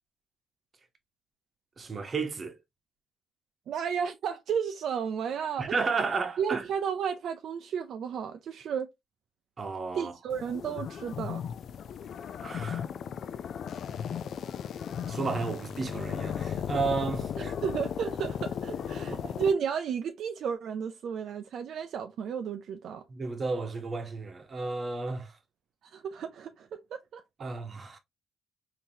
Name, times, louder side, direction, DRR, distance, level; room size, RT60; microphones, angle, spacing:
voice 1, 1.8-2.6 5.6-6.7 9.6-10.1 12.4-12.9 15.1-17.5 19.0-19.3 23.1-25.4 27.4-28.0, right 4 dB, 35° right, 0.9 m, -33 dB
voice 2, 3.7-5.9 6.4-8.9 9.9-11.4 17.4-23.0 25.8-27.2, right 7 dB, 70° right, 0.4 m, -33 dB
sound 1, 10.3-19.5, left 8 dB, 65° left, 0.3 m, -36 dB
3.8 x 2.7 x 2.7 m
cardioid pair, 90°, 0 cm